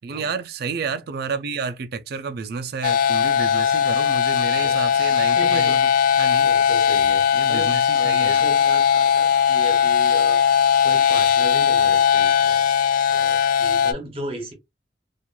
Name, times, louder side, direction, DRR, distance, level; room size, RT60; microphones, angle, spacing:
voice 1, 0.0-5.9 6.2-6.5 7.3-8.5, right 5 dB, 60° right, 0.4 m, -30 dB
sound 1, 2.8-13.9, left 8 dB, 50° left, 0.3 m, -19 dB
voice 2, 4.5-5.8 6.4-10.4 10.8-12.7 13.1-14.5, right 2 dB, 35° right, 1.1 m, -35 dB
2.9 x 2.4 x 2.2 m
head